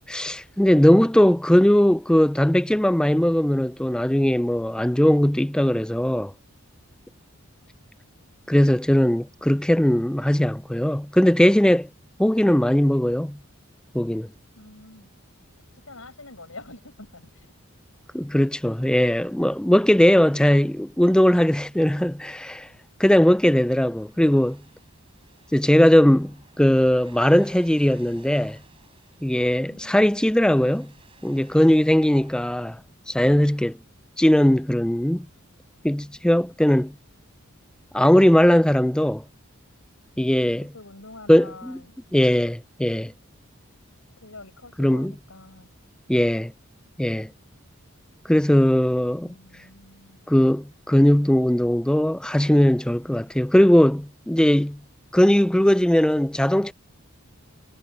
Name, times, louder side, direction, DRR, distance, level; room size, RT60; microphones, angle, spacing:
voice 1, 0.1-6.3 8.5-11.9 12.2-13.4 13.9-14.3 18.1-22.7 23.0-24.6 25.5-28.6 29.2-30.9 31.2-32.8 33.1-33.8 34.2-35.3 35.8-36.9 37.9-39.2 40.2-40.7 41.3-41.8 42.1-43.1 44.8-45.1 46.1-46.5 47.0-47.3 48.3-49.3 50.3-54.8 55.1-56.7, equal, 5° left, 0.3 m, -19 dB
voice 2, 14.6-15.1 15.9-17.5 29.6-30.3 40.6-41.9 44.2-45.7 49.2-50.3, left 2 dB, 75° left, 5.3 m, -46 dB
sound 1, 24.0-32.5, right 3 dB, 25° right, 5.0 m, -55 dB
head